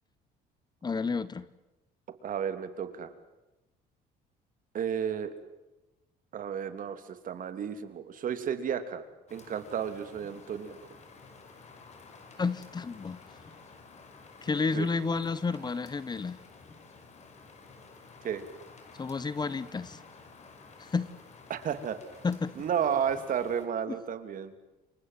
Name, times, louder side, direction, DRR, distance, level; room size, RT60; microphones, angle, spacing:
voice 1, 0.8-1.5 12.4-13.2 14.4-16.4 19.0-20.0 20.8-21.1 22.2-22.5, left 4 dB, 25° left, 17 dB, 1.2 m, -31 dB
voice 2, 2.2-3.1 4.7-5.3 6.3-9.0 9.3-10.8 14.5-14.9 18.2-18.4 21.5-22.0 22.5-24.5, right 8 dB, 55° right, 10 dB, 3.2 m, -32 dB
Rain, 9.3-23.7, left 4 dB, 40° left, 6.0 m, -52 dB
29.0 x 24.5 x 7.7 m, 1.0 s
cardioid pair, 110°, 17 cm